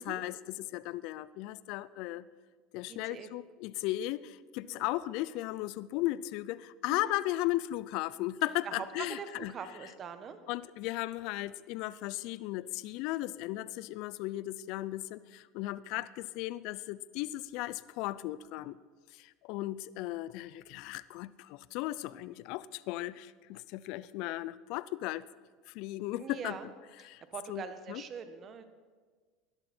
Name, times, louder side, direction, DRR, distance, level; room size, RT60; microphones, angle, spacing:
voice 1, 0.0-2.3 2.7-9.5 10.5-18.8 19.2-25.2 25.7-26.6 27.0-27.2 27.5-28.0, left 16 dB, 60° left, 18 dB, 0.5 m, -36 dB
voice 2, 2.9-3.3 4.6-4.9 6.9-7.2 8.6-10.4 26.2-26.7 27.0-28.7, right 7 dB, 40° right, 10 dB, 1.4 m, -43 dB
19.0 x 11.5 x 4.4 m, 1.5 s
hypercardioid pair, 90°, 0 cm